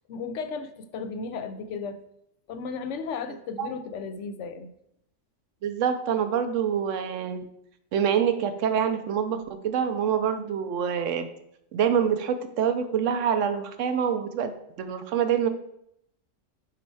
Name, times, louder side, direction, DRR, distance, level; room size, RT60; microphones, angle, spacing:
voice 1, 0.1-2.0 2.5-4.7, left 5 dB, 70° left, 10 dB, 0.9 m, -34 dB
voice 2, 5.6-7.5 7.9-11.3 11.7-14.5 14.8-15.5, right 8 dB, 75° right, 9 dB, 1.0 m, -26 dB
6.1 x 4.4 x 4.6 m, 0.77 s
omnidirectional pair, 1.3 m